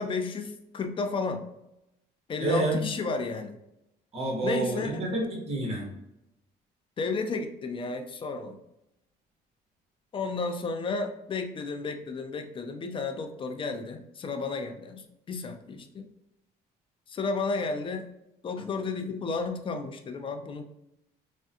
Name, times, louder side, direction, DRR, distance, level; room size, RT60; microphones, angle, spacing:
voice 1, 0.0-1.4 2.3-3.6 4.4-5.0 7.0-8.6 10.1-15.0 15.3-16.1 17.1-18.1 18.4-20.6, left 4 dB, 30° left, 6 dB, 0.4 m, -32 dB
voice 2, 2.4-2.9 4.1-5.9, right 2 dB, 35° right, -3 dB, 1.4 m, -28 dB
3.5 x 2.1 x 2.7 m, 0.84 s
cardioid pair, 110°, 17 cm